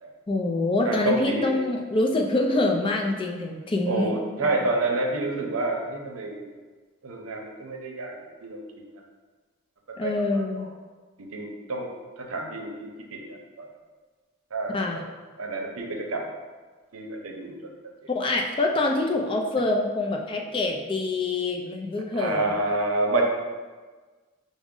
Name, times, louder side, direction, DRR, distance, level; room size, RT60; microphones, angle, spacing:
voice 1, 0.3-4.5 10.0-10.7 14.7-15.0 18.1-22.5, left 2 dB, 25° left, 1 dB, 0.4 m, -25 dB
voice 2, 0.8-1.6 3.9-6.5 7.0-8.1 8.4-8.6 10.0-10.7 11.3-11.9 12.2-13.4 14.5-14.7 15.4-16.2 16.9-17.5 22.1-23.2, right 2 dB, 80° right, 1 dB, 0.7 m, -28 dB
5.9 x 2.1 x 3.7 m, 1.4 s
head